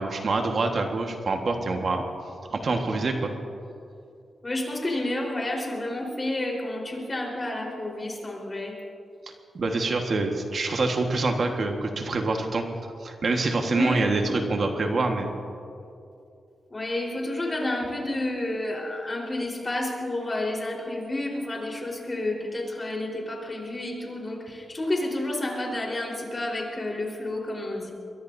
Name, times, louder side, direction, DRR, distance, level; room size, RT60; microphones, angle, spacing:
voice 1, 0.0-2.0 2.5-3.3 9.5-12.6 13.0-15.3, right 3 dB, 55° right, 3 dB, 1.5 m, -26 dB
voice 2, 4.4-8.7 13.7-14.4 16.7-27.9, left 1 dB, 30° left, -1 dB, 4.1 m, -30 dB
22.5 x 22.0 x 2.7 m, 2.5 s
cardioid pair, 90°, 0 cm